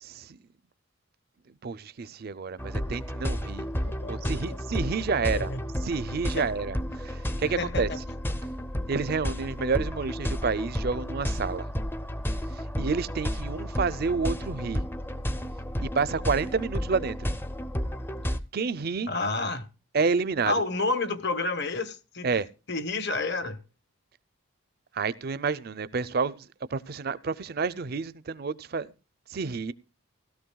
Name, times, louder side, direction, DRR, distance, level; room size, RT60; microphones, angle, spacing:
voice 1, 0.0-0.4 1.6-3.7 4.1-5.5 5.8-7.9 8.9-11.7 12.5-14.9 15.8-17.3 18.5-19.1 19.9-20.5 22.2-22.5 24.9-28.9 29.3-29.7, right 5 dB, 45° right, 0.5 m, -29 dB
sound 1, 2.6-18.4, equal, 10° left, 0.4 m, -32 dB
voice 2, 3.8-4.3 5.3-5.6 6.4-6.5 7.6-8.0 19.1-19.7 20.5-22.3 22.7-23.6, left 3 dB, 55° left, 1.0 m, -30 dB
17.0 x 13.0 x 2.3 m
head